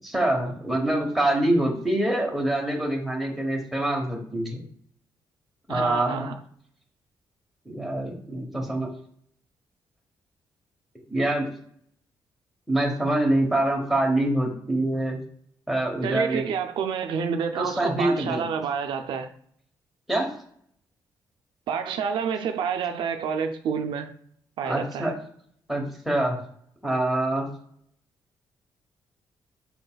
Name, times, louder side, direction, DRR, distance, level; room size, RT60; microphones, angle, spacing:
voice 1, 0.0-4.6 5.7-6.3 7.6-8.9 11.1-11.5 12.7-15.2 15.7-16.5 17.6-18.4 20.1-20.3 24.7-25.1 25.7-26.4 26.8-27.5, right 1 dB, ahead, 1.0 m, -25 dB
voice 2, 5.7-6.4 16.0-19.3 21.7-24.1 24.6-25.1, right 6 dB, 80° right, 0.4 m, -28 dB
5.6 x 3.9 x 2.2 m
cardioid pair, 120°, 8 cm